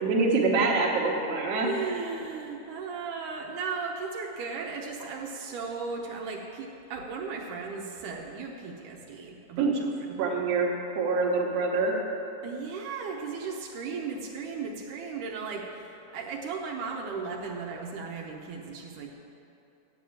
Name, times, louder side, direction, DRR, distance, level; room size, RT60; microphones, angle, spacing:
voice 1, 0.0-1.7 9.6-9.7 10.2-12.1, right 3 dB, 60° right, -1 dB, 2.1 m, -25 dB
voice 2, 1.6-10.2 12.4-19.1, right 5 dB, 80° right, 0 dB, 2.2 m, -36 dB
7.7 x 7.6 x 8.6 m, 2.9 s
omnidirectional pair, 3.7 m